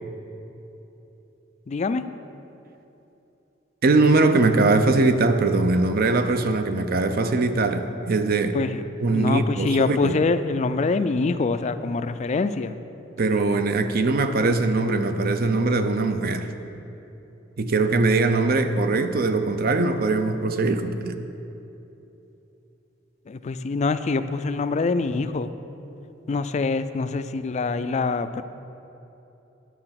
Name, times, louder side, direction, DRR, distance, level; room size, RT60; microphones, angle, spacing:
voice 1, 1.7-2.0 8.5-8.8 9.1-12.8 23.3-25.5 26.3-28.4, left 4 dB, 35° left, 11 dB, 0.4 m, -25 dB
voice 2, 3.8-8.6 9.0-10.1 13.2-16.5 17.6-21.2, right 3 dB, 50° right, 8 dB, 0.6 m, -21 dB
11.0 x 6.8 x 5.8 m, 3.0 s
head